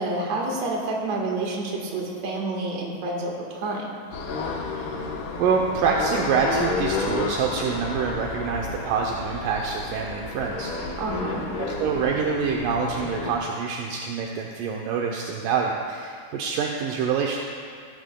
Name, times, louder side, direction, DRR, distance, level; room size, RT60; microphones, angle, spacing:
voice 1, 0.0-3.9 11.0-11.5, right 2 dB, 55° right, -2 dB, 2.2 m, -28 dB
sound 1, 4.1-13.3, left 3 dB, 70° left, 2.1 m, -31 dB
voice 2, 4.7-5.0 5.4-11.0 11.6-17.4, right 5 dB, 80° right, 0 dB, 2.0 m, -26 dB
17.5 x 11.0 x 2.2 m, 2.2 s
omnidirectional pair, 4.5 m